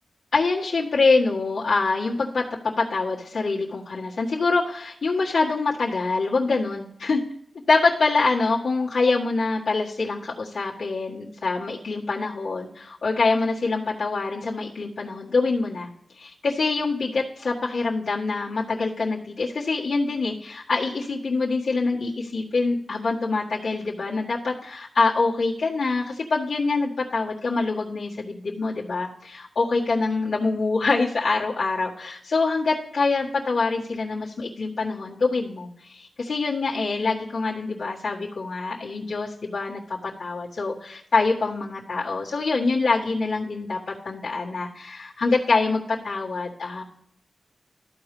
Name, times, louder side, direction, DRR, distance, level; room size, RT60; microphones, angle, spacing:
voice 1, 0.3-7.2 7.7-15.9 16.1-46.8, left 3 dB, 65° left, -7 dB, 1.7 m, -25 dB
13.5 x 4.8 x 3.3 m, 0.72 s
wide cardioid pair, 150°, 0 cm